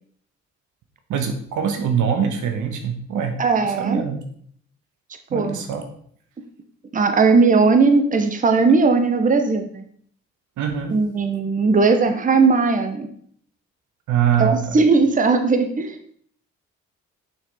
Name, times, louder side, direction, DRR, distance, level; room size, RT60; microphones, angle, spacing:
voice 1, 1.1-3.4 3.6-4.2 5.3-5.9 10.6-11.0 14.1-14.8, right 7 dB, 80° right, 6 dB, 1.2 m, -23 dB
voice 2, 3.4-4.0 5.3-5.6 6.9-9.9 10.9-13.1 14.4-16.1, right 4 dB, 25° right, 7 dB, 0.9 m, -18 dB
6.4 x 5.8 x 4.1 m, 0.62 s
cardioid pair, 90°, 30 cm